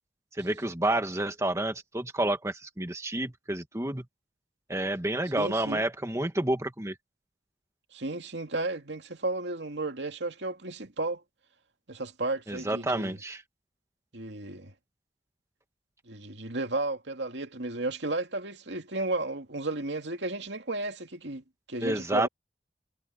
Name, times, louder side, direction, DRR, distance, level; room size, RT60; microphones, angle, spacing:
voice 1, 0.3-4.1 4.7-7.0 12.5-13.4 21.8-22.3, right 1 dB, 15° right, 1.7 m, -29 dB
voice 2, 5.4-5.8 7.9-11.2 11.9-13.2 14.1-14.7 16.1-21.4 21.7-22.3, right 2 dB, 75° right, 2.5 m, -33 dB
head